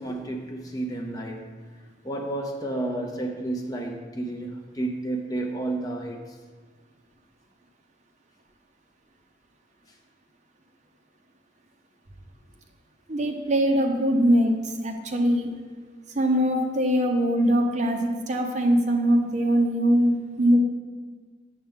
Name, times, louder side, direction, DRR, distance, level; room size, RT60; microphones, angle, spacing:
voice 1, 0.0-1.5 2.0-6.2, right 2 dB, 20° left, 1 dB, 0.7 m, -31 dB
voice 2, 13.1-14.5 14.8-15.5 16.1-20.6, equal, 35° right, 2 dB, 0.8 m, -22 dB
9.1 x 7.2 x 3.6 m, 1.5 s
head